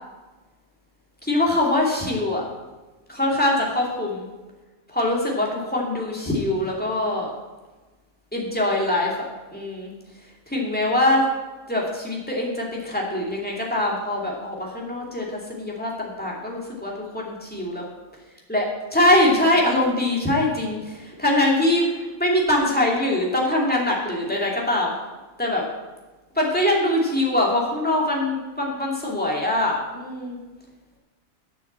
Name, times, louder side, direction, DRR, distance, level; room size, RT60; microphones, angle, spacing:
voice 1, 1.2-2.4 3.1-4.3 4.9-7.3 8.3-9.9 10.5-11.3 11.7-17.8 18.5-18.6 18.9-24.9 25.4-25.7 26.3-30.4, left 1 dB, 5° left, -3 dB, 2.6 m, -23 dB
11.0 x 6.9 x 7.4 m, 1.2 s
omnidirectional pair, 1.5 m